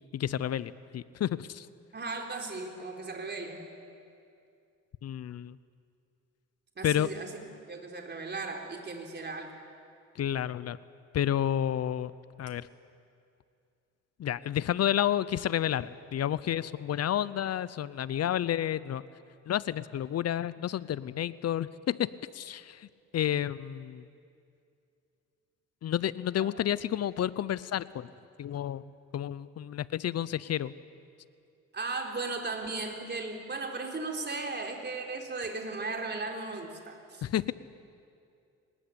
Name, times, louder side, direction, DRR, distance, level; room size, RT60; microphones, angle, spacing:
voice 1, 0.1-1.7 5.0-5.6 6.8-7.1 10.2-10.8 11.1-12.1 12.4-12.7 14.2-19.0 19.5-22.1 22.3-22.9 23.1-24.1 25.8-28.1 28.4-28.8 29.1-30.7 37.2-37.5, left 10 dB, 55° left, 18 dB, 0.7 m, -30 dB
voice 2, 1.9-3.7 6.8-7.3 7.7-9.5 26.4-26.5 31.7-37.2, right 3 dB, 35° right, 2 dB, 3.9 m, -36 dB
24.5 x 20.0 x 8.7 m, 2.4 s
cardioid pair, 90°, 30 cm